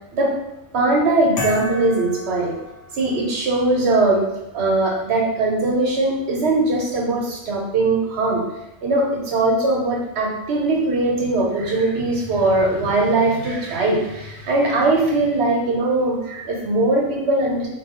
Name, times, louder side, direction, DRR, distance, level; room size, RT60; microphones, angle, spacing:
voice 1, 0.7-2.6 2.9-4.2 4.5-8.4 8.8-17.7, right 2 dB, 65° right, -1 dB, 1.1 m, -20 dB
sound 1, 1.4-3.3, left 1 dB, 85° left, 1.3 m, -32 dB
3.5 x 2.7 x 2.9 m, 0.88 s
omnidirectional pair, 1.2 m